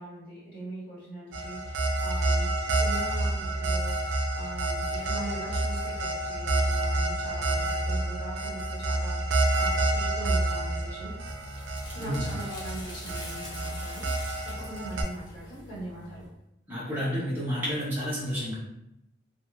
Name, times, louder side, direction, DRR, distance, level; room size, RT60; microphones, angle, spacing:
voice 1, 0.0-11.1 11.9-16.2, right 1 dB, 50° left, -10 dB, 1.3 m, -41 dB
sound 1, 1.3-15.0, right 2 dB, 80° right, 0.4 m, -29 dB
sound 2, 10.8-16.3, left 1 dB, 25° left, 0.7 m, -45 dB
voice 2, 12.0-12.3 16.7-18.6, equal, 10° right, -9 dB, 0.6 m, -30 dB
2.4 x 2.2 x 3.1 m, 0.84 s
head